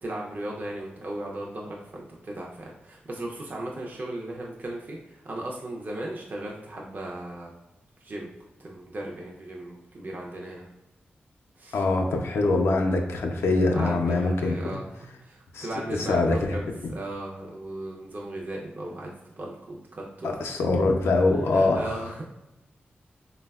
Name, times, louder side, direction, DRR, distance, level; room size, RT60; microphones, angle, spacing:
voice 1, 0.0-7.5 8.0-8.3 8.6-10.7 11.6-11.8 13.7-20.3 21.5-22.2, right 1 dB, 45° right, -2 dB, 0.4 m, -37 dB
voice 2, 11.7-14.6 15.5-16.6 20.2-22.0, left 2 dB, 85° left, 2 dB, 0.3 m, -24 dB
3.3 x 2.1 x 2.2 m, 0.97 s
cardioid pair, 65°, 4 cm